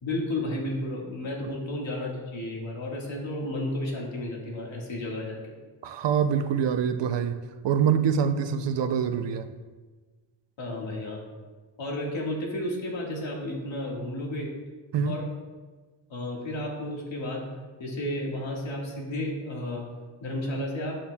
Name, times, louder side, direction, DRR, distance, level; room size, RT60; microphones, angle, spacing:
voice 1, 0.0-5.4 10.6-11.2 11.8-14.5 15.0-15.2 16.1-17.4 17.8-19.9 20.2-20.9, left 1 dB, 70° left, -2 dB, 1.7 m, -32 dB
voice 2, 5.8-7.4 7.6-9.5 14.9-15.2, right 7 dB, 65° right, 9 dB, 0.6 m, -25 dB
8.8 x 6.9 x 2.2 m, 1.3 s
wide cardioid pair, 150°, 47 cm